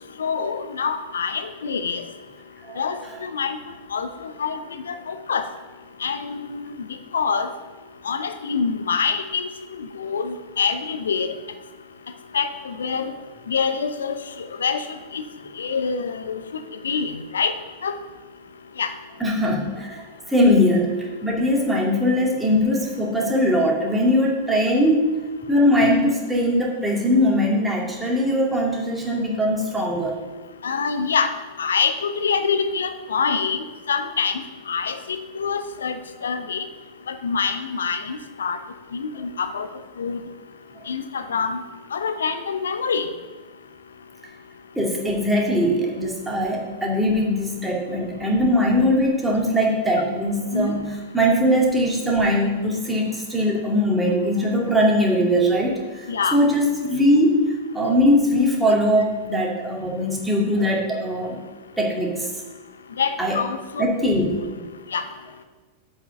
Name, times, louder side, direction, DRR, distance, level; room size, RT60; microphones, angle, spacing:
voice 1, 0.2-2.0 2.8-3.6 3.9-4.6 4.9-5.5 6.0-6.8 7.1-7.5 8.0-9.5 9.8-11.4 12.3-13.1 13.5-14.8 15.1-15.2 15.6-16.4 16.8-17.5 17.8-18.0 18.8-18.9 30.6-31.3 31.6-36.6 37.1-38.6 38.9-39.7 40.0-40.2 40.9-41.6 41.9-43.1 50.5-50.7 56.1-56.4 63.0-64.1 64.4-64.5 64.9-65.0, left 6 dB, 70° left, 10 dB, 0.7 m, -25 dB
voice 2, 19.2-25.0 25.5-30.2 44.8-56.1 56.3-56.6 56.9-57.3 57.7-61.4 61.8-62.3 63.2-63.4 63.8-64.6, equal, 5° right, -2 dB, 2.3 m, -21 dB
8.0 x 5.7 x 6.8 m, 1.3 s
figure-of-eight pair, 90°, 0 cm